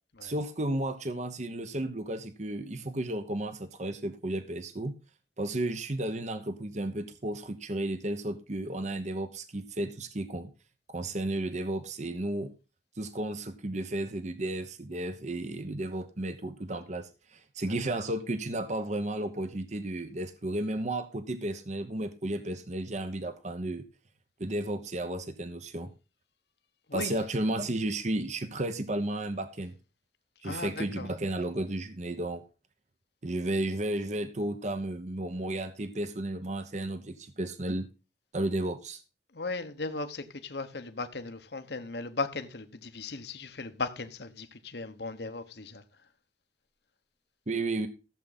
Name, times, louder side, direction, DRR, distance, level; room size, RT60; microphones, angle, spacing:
voice 1, 0.2-4.9 5.4-10.5 10.9-12.5 13.0-23.8 24.4-25.9 26.9-29.7 30.4-32.4 33.2-37.9 38.3-39.0 47.5-47.9, right 1 dB, 40° right, 1.0 m, -33 dB
voice 2, 30.4-31.1 39.3-45.8, left 3 dB, 70° left, 1.2 m, -37 dB
15.0 x 7.5 x 4.1 m
head